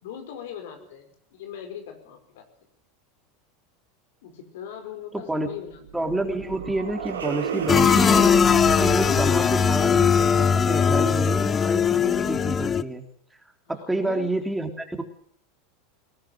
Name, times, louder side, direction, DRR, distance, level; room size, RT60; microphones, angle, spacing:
voice 1, 0.0-2.4 4.2-5.8 13.7-14.4, left 9 dB, 70° left, 6 dB, 5.0 m, -40 dB
sound 1, 5.5-12.0, right 8 dB, 90° right, 3.8 m, -34 dB
voice 2, 5.9-8.4 8.8-13.1 13.7-15.0, right 2 dB, 5° right, 4 dB, 3.5 m, -29 dB
sound 2, 7.7-12.8, left 7 dB, 25° left, 0.8 m, -20 dB
20.5 x 18.5 x 7.8 m, 0.64 s
hypercardioid pair, 90°, 0 cm